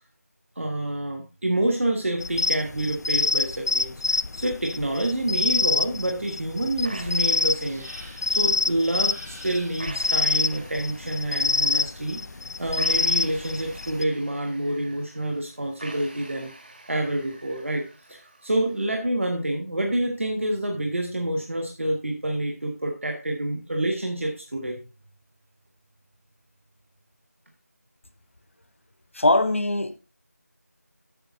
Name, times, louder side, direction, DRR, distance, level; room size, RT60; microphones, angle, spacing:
voice 1, 0.6-7.9 8.3-12.2 12.6-16.5 16.9-24.8, right 1 dB, 50° right, 1.4 m, -27 dB
sound 1, 2.2-14.0, left 3 dB, 80° left, 0.4 m, -26 dB
sound 2, 6.8-18.8, right 2 dB, 35° right, 1.4 m, -47 dB
sound 3, 7.6-8.5 8.9-10.1 11.8-13.7, right 1 dB, 80° right, 4.9 m, -49 dB
voice 2, 29.1-30.0, left 2 dB, 50° left, 0.7 m, -21 dB
8.9 x 6.3 x 3.8 m
figure-of-eight pair, 180°, 9 cm